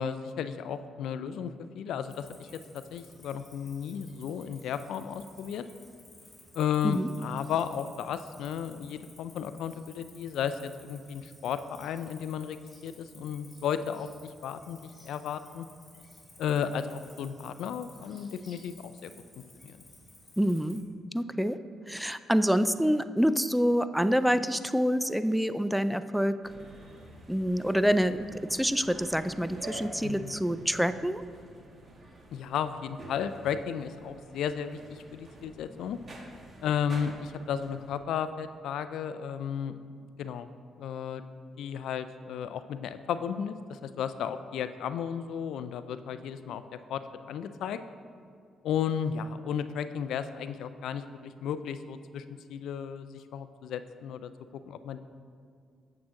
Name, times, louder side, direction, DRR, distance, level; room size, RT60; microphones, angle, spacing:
voice 1, 0.0-2.5 2.7-5.7 6.5-15.7 16.4-19.8 30.0-30.3 32.3-36.0 36.6-39.8 40.2-40.5 40.8-41.2 41.6-47.8 48.6-52.2 52.5-54.3 54.7-55.0, left 8 dB, 80° left, 11 dB, 0.4 m, -34 dB
Cricket, 2.1-20.8, left 2 dB, 15° left, 2.2 m, -55 dB
voice 2, 20.4-20.8 21.1-21.6 21.9-26.4 27.3-31.2, equal, ahead, 12 dB, 0.3 m, -26 dB
sound 1, 26.4-38.0, right 1 dB, 40° right, 1.4 m, -48 dB
8.8 x 7.2 x 3.7 m, 2.4 s
cardioid pair, 90°, 0 cm